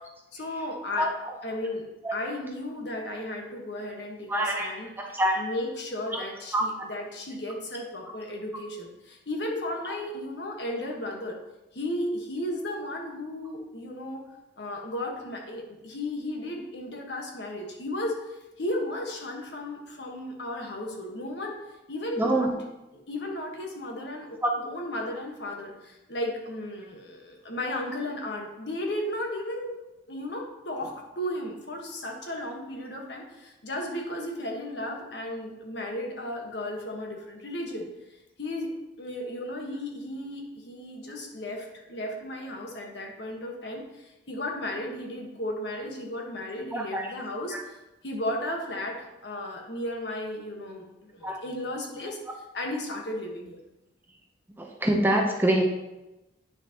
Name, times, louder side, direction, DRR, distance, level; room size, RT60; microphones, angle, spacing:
voice 1, 0.3-11.4 11.7-14.2 14.6-21.6 21.9-22.5 22.9-29.8 30.1-37.9 38.4-38.7 39.0-52.2 52.5-53.6, left 1 dB, 65° left, 1 dB, 1.3 m, -34 dB
voice 2, 4.3-5.4 6.1-6.2 6.5-6.9 22.2-22.5 24.4-24.5 46.7-47.1 47.5-47.6 51.2-51.4 54.6-55.7, right 1 dB, 10° right, 0 dB, 0.7 m, -25 dB
9.4 x 6.4 x 2.9 m, 0.99 s
head